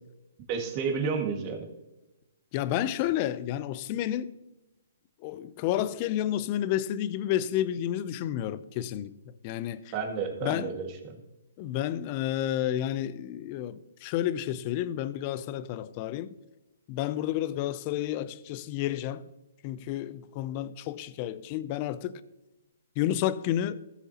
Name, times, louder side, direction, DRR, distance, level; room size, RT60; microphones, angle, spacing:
voice 1, 0.5-1.7 9.9-11.2, right 5 dB, 30° right, 1.8 m, -31 dB
voice 2, 2.5-4.3 5.2-9.1 9.4-9.9 10.4-10.7 11.6-16.3 16.9-19.2 19.6-22.2 23.0-23.8, left 12 dB, 35° left, 0.5 m, -30 dB
16.5 x 7.1 x 2.9 m
hypercardioid pair, 150°, 0 cm